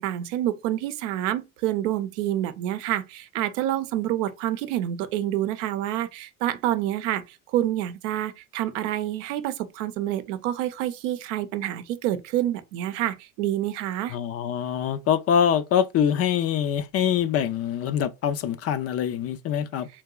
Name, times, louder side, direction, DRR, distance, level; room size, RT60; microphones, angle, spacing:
voice 1, 0.0-14.2, right 12 dB, 85° right, 0.6 m, -28 dB
voice 2, 14.1-19.9, left 8 dB, 40° left, 0.4 m, -24 dB
3.3 x 2.8 x 2.3 m
supercardioid pair, 100°, 36 cm